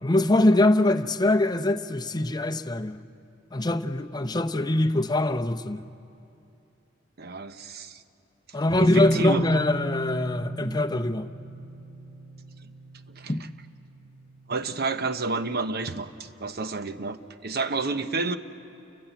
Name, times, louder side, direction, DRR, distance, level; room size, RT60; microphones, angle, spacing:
voice 1, 0.0-3.0 3.5-5.8 8.5-11.3 13.3-13.5, left 1 dB, 20° left, 0.7 m, -23 dB
voice 2, 7.2-8.0 8.8-9.5 13.1-13.3 14.5-18.4, right 3 dB, 55° right, 0.9 m, -30 dB
sound 1, 8.7-14.3, equal, 40° right, 2.7 m, -31 dB
29.0 x 15.0 x 8.2 m
head